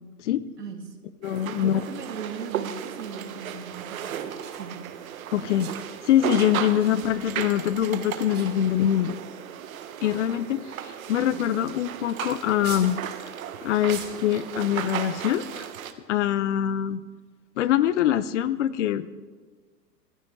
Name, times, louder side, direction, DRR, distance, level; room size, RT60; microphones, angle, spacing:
voice 1, 0.6-1.1 1.5-4.2 4.6-4.8 6.8-7.0 11.2-11.5, right 6 dB, 70° right, 3 dB, 2.7 m, -38 dB
voice 2, 1.2-1.8 5.3-5.7 6.1-9.2 10.0-13.0 13.6-15.7 16.1-17.0 17.6-19.1, left 11 dB, 45° left, 17 dB, 0.7 m, -24 dB
sound 1, 1.2-15.9, right 9 dB, 55° right, 1.4 m, -35 dB
sound 2, 4.4-4.7 5.6-6.0 6.8-7.5 7.7-8.0 8.3-9.0 9.8-9.9 11.1-11.3 11.7-11.8 12.6-13.0 13.9-14.3 15.1-15.4, right 7 dB, 20° right, 2.8 m, -43 dB
26.0 x 14.5 x 3.2 m, 1.5 s
figure-of-eight pair, 105°, 49 cm